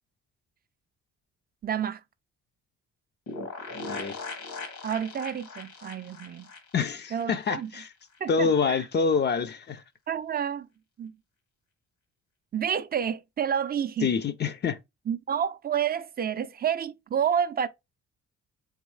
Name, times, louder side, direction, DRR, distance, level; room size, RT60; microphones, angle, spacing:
voice 1, 1.6-2.0 4.8-6.5 7.1-7.7 8.2-8.8 10.1-10.7 11.0-11.1 12.5-14.1 15.1-17.7, right 8 dB, 30° right, 0.4 m, -29 dB
sound 1, 3.3-7.9 8.1-8.2 8.5-8.6, left 3 dB, 75° left, 1.2 m, -40 dB
voice 2, 3.8-4.2 6.7-7.9 8.3-9.8 14.0-14.8, left 5 dB, 35° left, 0.4 m, -26 dB
3.6 x 3.5 x 3.1 m
cardioid pair, 90°, 30 cm